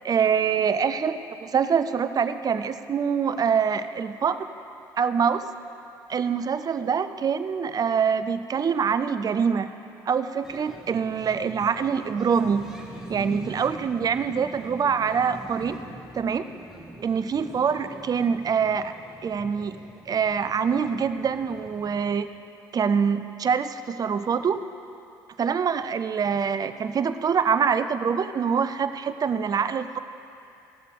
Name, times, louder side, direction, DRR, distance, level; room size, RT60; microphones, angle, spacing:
voice 1, 0.0-4.4 5.0-5.4 6.1-9.7 10.1-12.7 13.1-15.8 16.2-16.5 17.0-18.9 19.2-19.8 20.1-22.3 22.7-24.6 25.4-30.0, right 6 dB, 40° right, 11 dB, 0.6 m, -25 dB
sound 1, 10.4-22.2, right 1 dB, 5° right, 2.0 m, -43 dB
15.5 x 6.6 x 5.3 m, 2.6 s
hypercardioid pair, 65°, 10 cm